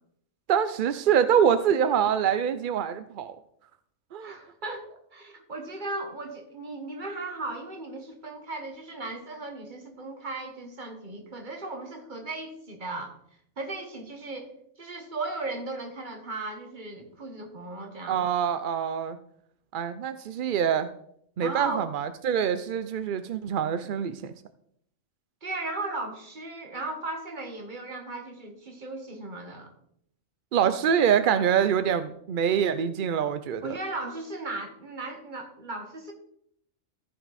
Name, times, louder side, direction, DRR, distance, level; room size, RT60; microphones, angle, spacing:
voice 1, 0.5-3.4 4.1-4.3 18.1-19.2 19.7-20.9 21.4-24.3 30.5-33.7, right 8 dB, 65° right, 12 dB, 0.5 m, -25 dB
voice 2, 4.2-13.2 13.6-14.5 14.8-18.3 21.4-21.9 25.4-29.7 33.6-36.1, right 2 dB, 35° right, 4 dB, 1.6 m, -36 dB
14.0 x 5.8 x 4.1 m, 0.69 s
omnidirectional pair, 1.4 m